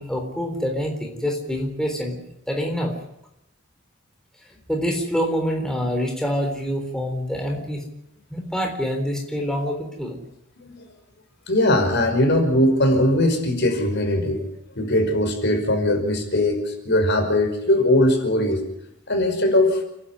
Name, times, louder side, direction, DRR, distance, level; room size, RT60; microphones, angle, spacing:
voice 1, 0.0-2.2 2.5-2.9 4.7-7.8 8.3-10.2, equal, 5° left, 1 dB, 3.8 m, -26 dB
voice 2, 11.5-14.5 14.8-18.6 19.1-19.8, left 1 dB, 55° left, 5 dB, 5.3 m, -20 dB
29.5 x 11.5 x 10.0 m, 0.84 s
head